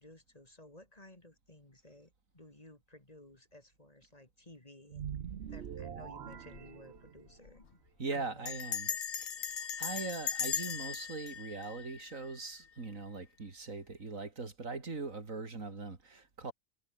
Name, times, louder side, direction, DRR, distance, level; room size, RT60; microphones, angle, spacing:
voice 1, 0.0-5.0 5.5-7.8 8.1-8.6 8.9-9.0, left 1 dB, 25° left, 3.2 m, -56 dB
sound 1, 4.9-7.5, right 8 dB, 55° right, 1.1 m, -44 dB
Bell, 6.3-6.7 7.0-7.1 7.3-7.7 8.5-12.5, left 7 dB, 75° left, 1.7 m, -38 dB
voice 2, 8.0-8.9 9.2-16.5, right 3 dB, 70° right, 3.3 m, -41 dB
omnidirectional pair, 1.4 m